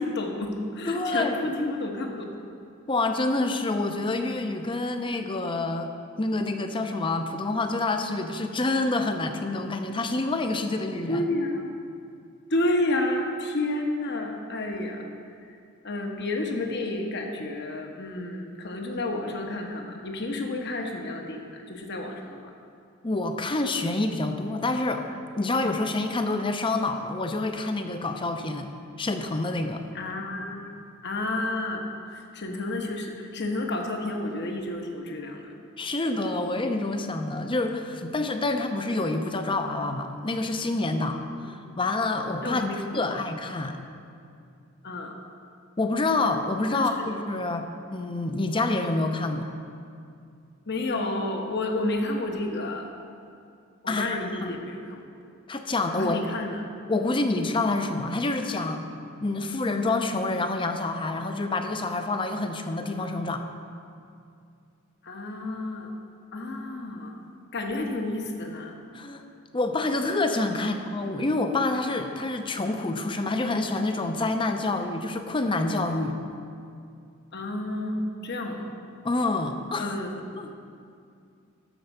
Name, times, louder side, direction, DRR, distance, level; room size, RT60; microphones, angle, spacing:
voice 1, 0.0-2.3 11.1-11.7 12.5-15.0 15.8-22.4 29.9-30.7 31.0-35.5 41.4-41.5 42.4-43.2 44.8-45.1 46.7-46.9 50.7-52.9 53.8-55.0 55.9-56.6 65.0-65.9 66.3-67.1 67.5-68.8 70.6-70.7 77.3-78.6 79.8-80.1, left 2 dB, 55° left, 2 dB, 1.1 m, -30 dB
voice 2, 0.9-1.4 2.9-5.9 6.2-11.3 23.0-25.0 25.4-28.7 29.0-29.8 35.8-41.2 41.4-43.8 45.8-49.5 53.9-54.5 55.5-56.4 56.9-58.8 59.2-63.4 68.9-69.2 69.5-76.2 79.0-79.9 80.3-80.5, left 2 dB, 25° left, 6 dB, 0.6 m, -27 dB
12.5 x 4.6 x 6.6 m, 2.4 s
head